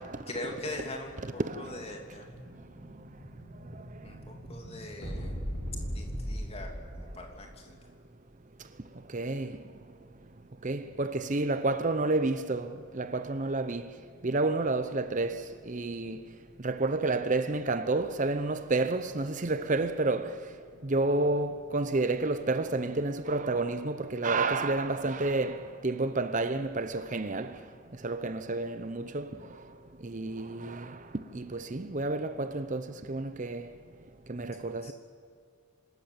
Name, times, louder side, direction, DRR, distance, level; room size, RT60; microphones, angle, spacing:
voice 1, 0.3-2.3 4.0-5.3 5.9-7.7 34.8-34.9, left 1 dB, 30° left, 2.9 m, -41 dB
voice 2, 1.4-1.7 9.1-9.5 10.6-12.7 12.9-13.9 14.2-16.2 16.6-20.4 20.8-27.5 28.0-29.3 30.0-31.0 31.3-33.7 34.3-34.9, right 2 dB, 35° right, 0.8 m, -30 dB
Explosion, 1.6-7.4, equal, 55° left, 6.7 m, -39 dB
25.5 x 13.5 x 8.9 m
head